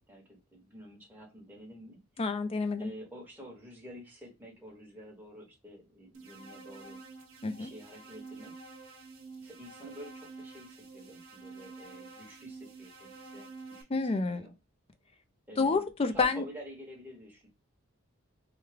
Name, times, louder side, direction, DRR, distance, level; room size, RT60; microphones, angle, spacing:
voice 1, 0.1-2.0 2.8-7.0 7.6-8.6 9.4-14.5 15.5-17.5, equal, 10° right, 1.1 m, -49 dB
voice 2, 2.2-2.9 7.4-7.7 13.9-14.5 15.6-16.4, left 4 dB, 25° left, 0.4 m, -29 dB
sound 1, 6.1-13.8, right 4 dB, 75° right, 0.7 m, -49 dB
3.3 x 2.2 x 3.3 m
head